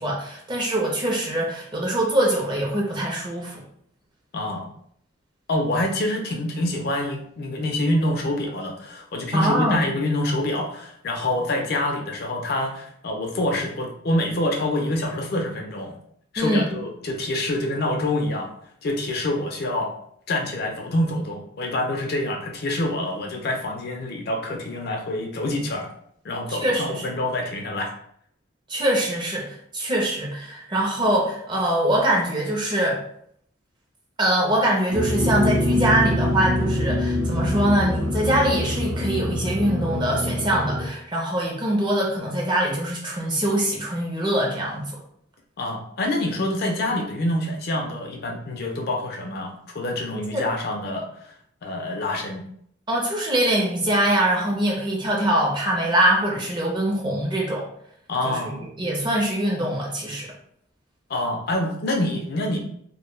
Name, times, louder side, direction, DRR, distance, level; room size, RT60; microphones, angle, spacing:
voice 1, 0.0-3.6 9.3-9.9 16.4-16.7 26.5-27.1 28.7-33.0 34.2-45.0 50.2-50.4 52.9-57.7 58.2-58.4 58.8-60.3, right 1 dB, 20° right, -2 dB, 0.5 m, -23 dB
voice 2, 4.3-4.7 5.5-15.9 16.3-18.5 18.8-19.9 20.3-25.9 26.2-27.9 45.6-51.3 51.6-52.4 58.1-58.7 61.1-62.6, left 1 dB, 50° left, 1 dB, 0.4 m, -26 dB
sound 1, 34.9-40.9, left 1 dB, 85° right, 0.6 m, -24 dB
2.1 x 2.1 x 3.1 m, 0.68 s
head